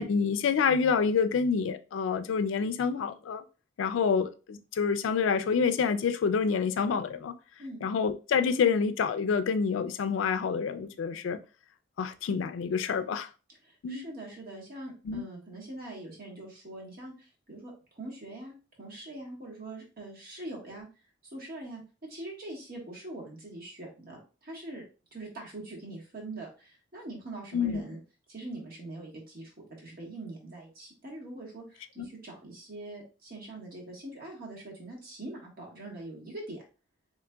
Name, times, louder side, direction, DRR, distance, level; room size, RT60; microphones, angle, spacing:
voice 1, 0.0-3.4 3.8-7.3 7.8-11.4 12.0-13.3 13.8-14.1 15.1-15.2 27.5-27.8 32.0-32.1, left 6 dB, 85° left, 0.4 m, -27 dB
voice 2, 13.6-20.9 21.2-24.8 25.1-28.0 28.3-36.6, right 2 dB, 50° right, 1.3 m, -43 dB
3.8 x 3.1 x 2.2 m
head